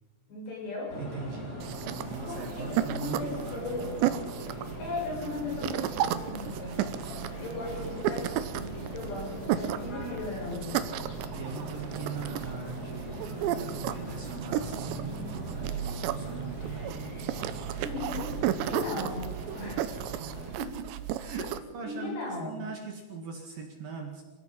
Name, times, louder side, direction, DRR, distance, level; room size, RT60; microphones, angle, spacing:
voice 1, 0.3-0.9 2.3-4.0 4.8-6.8 7.4-10.8 17.8-19.9 21.8-22.7, left 3 dB, 60° left, -2 dB, 9.1 m, -37 dB
sound 1, 0.9-20.5, right 1 dB, 20° left, 4.0 m, -40 dB
voice 2, 1.0-3.7 11.3-16.9 20.2-20.9 21.2-24.2, right 5 dB, 55° right, 2 dB, 3.2 m, -40 dB
sound 2, 1.6-21.6, right 11 dB, 80° right, 2.9 m, -34 dB
26.5 x 17.0 x 5.7 m, 1.2 s
omnidirectional pair, 5.5 m